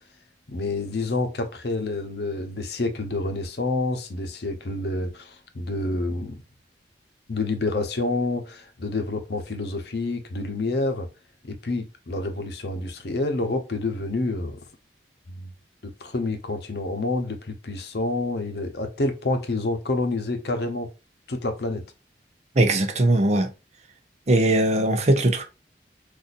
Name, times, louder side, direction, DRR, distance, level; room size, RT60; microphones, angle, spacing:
voice 1, 0.5-6.4 7.3-11.1 11.4-14.6 15.3-15.5 16.0-20.9 21.3-21.8, left 2 dB, 65° left, 0.8 m, -28 dB
voice 2, 22.6-23.5 24.3-25.4, right 1 dB, 40° right, 0.6 m, -20 dB
4.0 x 2.6 x 2.5 m
head